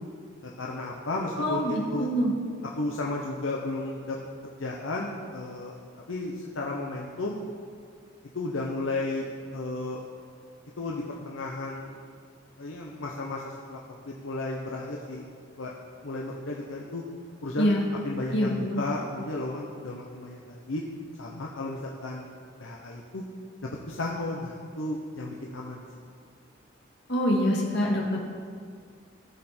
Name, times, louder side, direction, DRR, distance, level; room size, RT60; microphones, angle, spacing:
voice 1, 0.6-2.1 2.8-4.2 4.6-5.7 6.1-7.4 8.3-10.0 10.8-12.0 12.6-13.8 14.1-15.2 15.6-15.7 16.0-17.0 17.4-17.7 18.0-20.8 21.2-22.3 22.6-23.2 23.9-25.9, left 2 dB, 80° left, -2 dB, 0.9 m, -33 dB
voice 2, 1.4-2.3 17.6-17.8 18.3-18.8 27.1-28.2, equal, 60° left, -2 dB, 2.0 m, -25 dB
15.5 x 6.7 x 4.4 m, 2.1 s
head